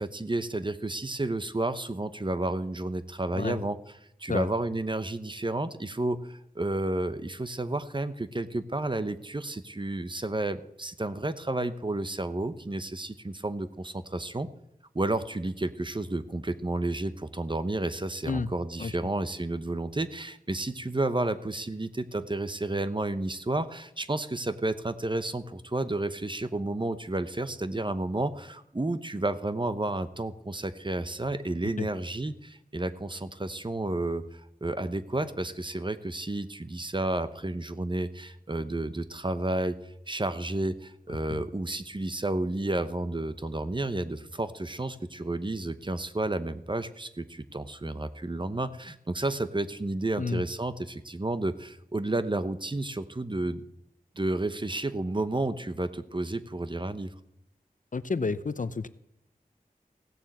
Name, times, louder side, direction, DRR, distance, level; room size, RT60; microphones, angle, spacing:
voice 1, 0.0-3.8 4.2-14.5 14.9-39.8 40.1-53.7 54.2-57.1, right 2 dB, 30° right, 12 dB, 1.0 m, -31 dB
voice 2, 57.9-58.9, left 4 dB, 55° left, 15 dB, 0.7 m, -30 dB
16.5 x 7.2 x 7.9 m, 0.82 s
wide cardioid pair, 45°, 15 cm